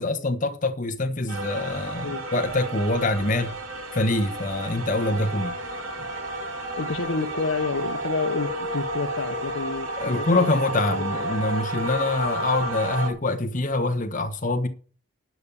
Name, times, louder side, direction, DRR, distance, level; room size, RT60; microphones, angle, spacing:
voice 1, 0.0-3.5 3.9-5.6 10.0-14.7, left 2 dB, 35° left, 1.2 m, -25 dB
sound 1, 1.3-13.1, right 1 dB, 75° right, 3.2 m, -31 dB
voice 2, 6.8-10.5 10.9-11.4, left 4 dB, 70° left, 0.9 m, -30 dB
12.0 x 5.5 x 8.5 m
head